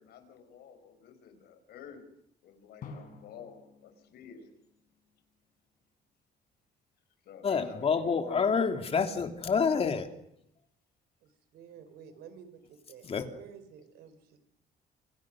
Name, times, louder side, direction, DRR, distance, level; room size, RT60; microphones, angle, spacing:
voice 1, 0.0-2.1 2.4-4.5 7.2-8.5, left 7 dB, 70° left, 9 dB, 5.5 m, -50 dB
Drum, 2.8-5.5, left 4 dB, 55° left, 6.3 m, -51 dB
voice 2, 7.4-10.1 13.0-13.3, left 5 dB, 35° left, 6 dB, 3.0 m, -28 dB
voice 3, 11.2-14.4, right 7 dB, 75° right, 11 dB, 4.5 m, -52 dB
28.0 x 27.0 x 6.4 m, 0.73 s
cardioid pair, 110°, 17 cm